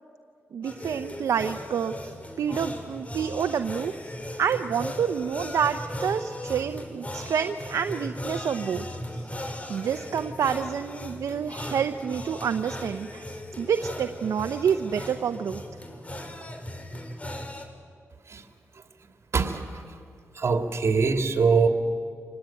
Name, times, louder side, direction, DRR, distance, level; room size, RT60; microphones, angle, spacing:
voice 1, 0.5-1.9 2.4-3.9 4.4-8.9 9.1-9.4 9.7-15.6, right 7 dB, 85° right, 8 dB, 0.7 m, -28 dB
sound 1, 0.6-17.7, left 1 dB, 25° left, 3.5 m, -38 dB
voice 2, 20.4-21.7, right 5 dB, 60° right, 5 dB, 2.6 m, -22 dB
26.0 x 19.5 x 9.0 m, 2.2 s
cardioid pair, 60°, 5 cm